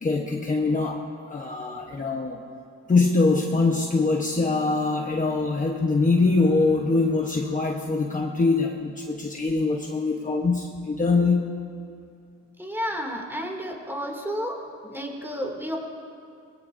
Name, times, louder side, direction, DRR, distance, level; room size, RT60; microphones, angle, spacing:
voice 1, 0.0-2.4 2.9-11.5, left 3 dB, 25° left, 0 dB, 1.1 m, -23 dB
voice 2, 12.6-14.5 14.8-15.8, equal, 5° right, 0 dB, 2.7 m, -31 dB
23.0 x 20.5 x 2.7 m, 2.5 s
cardioid pair, 115°, 31 cm